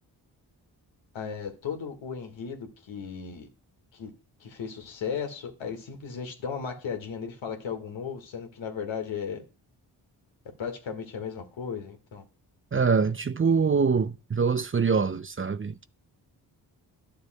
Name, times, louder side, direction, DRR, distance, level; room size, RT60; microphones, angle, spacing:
voice 1, 1.1-3.5 3.9-4.1 4.4-9.4 10.6-12.2, left 6 dB, 80° left, 1.8 m, -35 dB
voice 2, 12.7-15.8, right 5 dB, 30° right, 0.6 m, -24 dB
12.0 x 6.9 x 2.3 m
supercardioid pair, 45°, 45 cm